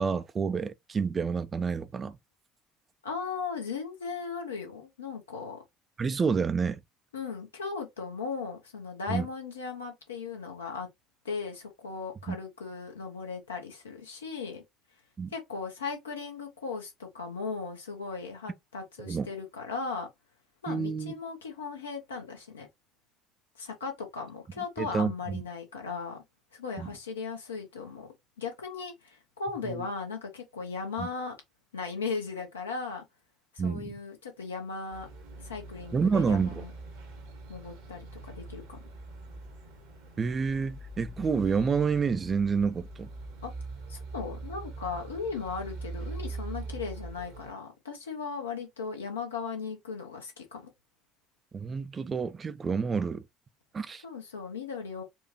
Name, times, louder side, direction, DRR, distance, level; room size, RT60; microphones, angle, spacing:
voice 1, 0.0-2.2 6.0-6.8 9.1-9.3 12.3-12.4 15.2-15.3 19.1-19.3 20.7-21.1 24.8-25.4 26.8-26.9 29.7-29.9 31.0-31.1 33.6-33.9 35.9-36.6 40.2-43.1 51.5-53.2 53.7-54.0, right 5 dB, 30° right, 0.4 m, -29 dB
voice 2, 3.0-5.6 7.1-10.9 11.2-14.6 15.3-20.1 20.6-22.7 23.6-26.2 26.5-28.1 28.4-31.3 31.7-33.0 33.5-35.1 35.4-36.7 37.5-38.8 43.4-43.5 43.9-50.6 54.0-55.0, left 5 dB, 75° left, 1.0 m, -37 dB
sound 1, 34.9-47.5, right 3 dB, 65° right, 1.1 m, -42 dB
4.3 x 2.4 x 2.9 m
figure-of-eight pair, 60°, 0 cm